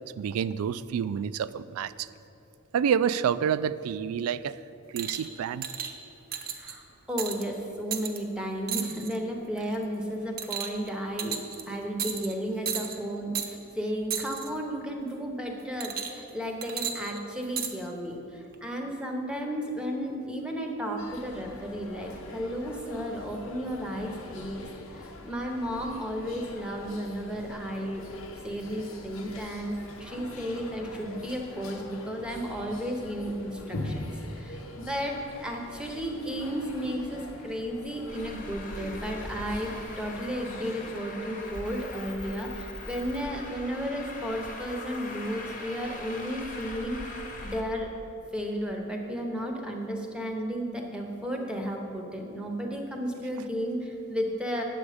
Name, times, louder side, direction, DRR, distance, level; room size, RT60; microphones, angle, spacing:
voice 1, 0.2-2.1 2.7-4.6 4.9-5.7, right 8 dB, 85° right, 17 dB, 0.3 m, -28 dB
sound 1, 5.0-5.3 5.6-5.9 6.3-6.7 7.2-7.4 7.9-8.2 8.7-9.2 9.6-9.8 10.4-10.9 11.2-11.6 12.0-12.3 12.6-13.0 13.3-13.5 14.1-14.5 15.8-16.3 16.6-17.7 18.5-18.6, right 8 dB, 45° right, 0.6 m, -33 dB
voice 2, 6.4-6.8 7.1-11.4 11.7-24.7 24.9-28.0 28.4-47.9 48.3-54.6, equal, 5° right, 1 dB, 0.8 m, -33 dB
sound 2, 21.0-40.9, left 1 dB, 70° left, 0.9 m, -43 dB
Traffic noise roadway noise, 38.1-47.6, left 2 dB, 35° left, 1.1 m, -41 dB
8.8 x 7.1 x 4.9 m, 2.8 s
head